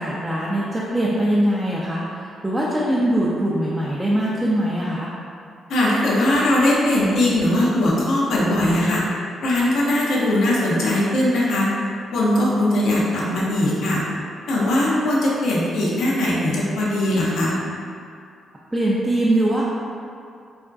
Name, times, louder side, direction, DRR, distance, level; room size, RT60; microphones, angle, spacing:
voice 1, 0.0-5.1 18.7-19.6, right 1 dB, 15° right, -6 dB, 0.4 m, -22 dB
voice 2, 5.7-9.0 9.4-11.7 12.1-14.0 14.5-17.5, left 1 dB, 70° left, -5 dB, 0.5 m, -20 dB
2.4 x 2.1 x 2.4 m, 2.4 s
hypercardioid pair, 45°, 0 cm